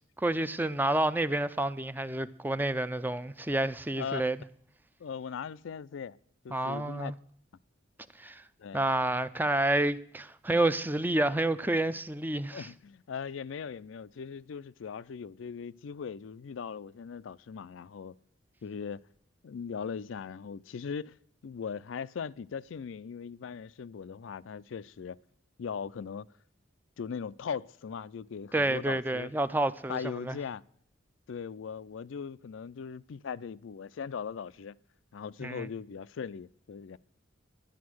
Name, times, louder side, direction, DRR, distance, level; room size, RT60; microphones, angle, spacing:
voice 1, 0.2-4.4 6.5-7.1 8.2-8.4 8.7-12.7 28.5-30.0 30.2-30.4 35.4-35.7, right 2 dB, 10° right, 0.4 m, -29 dB
voice 2, 5.0-6.2 6.4-7.1 8.6-8.8 12.5-18.1 18.6-19.1 19.4-21.2 21.4-25.2 25.6-26.3 27.0-29.3 29.9-30.6 31.3-34.8 35.1-37.0, left 6 dB, 75° left, 0.4 m, -39 dB
11.5 x 10.5 x 6.2 m
head